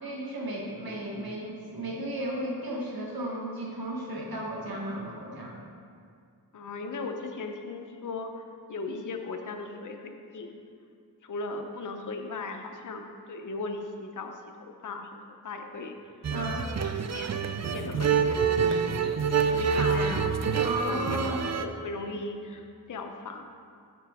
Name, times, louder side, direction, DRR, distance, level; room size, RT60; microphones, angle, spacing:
voice 1, 0.0-5.6 16.3-16.7 20.6-21.5, right 1 dB, 60° right, -2 dB, 1.2 m, -34 dB
voice 2, 6.5-8.4 8.7-10.5 11.2-15.2 15.4-16.0 17.0-17.4 17.7-20.6 20.8-23.5, left 3 dB, 50° left, 4 dB, 0.7 m, -38 dB
sound 1, 16.2-21.6, right 6 dB, 45° right, 0.5 m, -27 dB
8.1 x 6.7 x 3.5 m, 2.3 s
cardioid pair, 50°, 40 cm